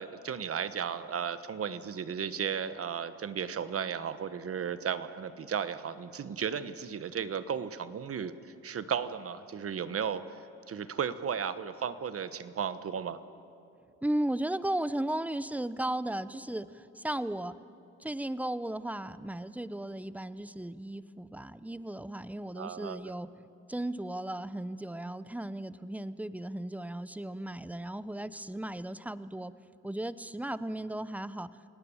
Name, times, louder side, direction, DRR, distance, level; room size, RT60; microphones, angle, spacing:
voice 1, 0.0-8.3 8.6-10.2 10.7-13.2 22.6-23.0, right 7 dB, 50° right, 13 dB, 1.2 m, -34 dB
voice 2, 14.0-17.5 18.0-29.5 29.8-31.5, right 1 dB, 5° right, 15 dB, 0.7 m, -35 dB
29.5 x 18.0 x 7.3 m, 2.7 s
cardioid pair, 90°, 30 cm